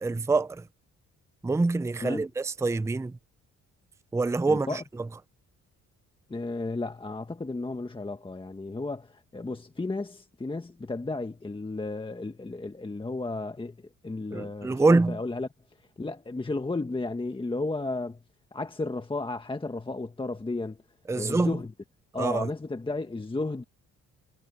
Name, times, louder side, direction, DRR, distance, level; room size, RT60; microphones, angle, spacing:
voice 1, 0.0-0.6 1.4-3.1 4.1-4.8 14.3-15.2 21.1-21.6 22.2-22.5, right 3 dB, 10° right, 0.5 m, -25 dB
voice 2, 4.5-4.8 6.3-13.8 14.0-15.5 16.0-18.2 18.5-20.8 21.1-21.7 22.1-23.6, left 3 dB, 15° left, 1.5 m, -33 dB
cardioid pair, 90°, 30 cm